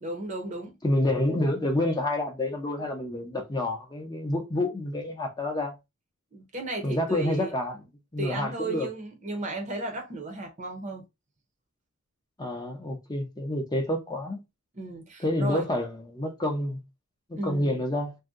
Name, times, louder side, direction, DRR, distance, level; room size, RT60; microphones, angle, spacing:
voice 1, 0.0-0.7 6.3-7.5 8.2-11.0 14.7-15.7 17.4-17.8, right 2 dB, 35° right, 0.7 m, -34 dB
voice 2, 0.8-5.7 6.8-7.8 8.1-8.9 12.4-14.4 15.2-16.8 17.3-18.2, left 1 dB, 20° left, 0.6 m, -28 dB
2.7 x 2.2 x 3.5 m
head